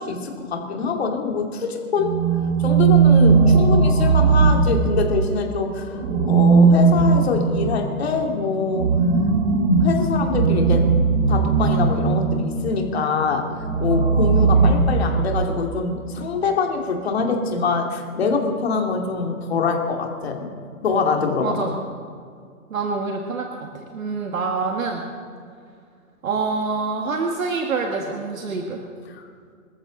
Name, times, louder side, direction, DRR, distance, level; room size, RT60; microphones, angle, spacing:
voice 1, 0.0-2.2 2.6-8.9 9.8-10.9 11.3-13.5 13.8-20.5 20.8-21.7 29.2-29.3, left 4 dB, 45° left, 3 dB, 2.4 m, -24 dB
sound 1, 2.0-5.3 6.0-12.6 13.6-15.5, right 4 dB, 35° right, 1.8 m, -18 dB
voice 2, 21.4-21.8 22.7-25.0 26.2-28.8, right 4 dB, 65° right, 2 dB, 1.9 m, -26 dB
25.5 x 14.0 x 3.9 m, 2.2 s
hypercardioid pair, 175°, 44 cm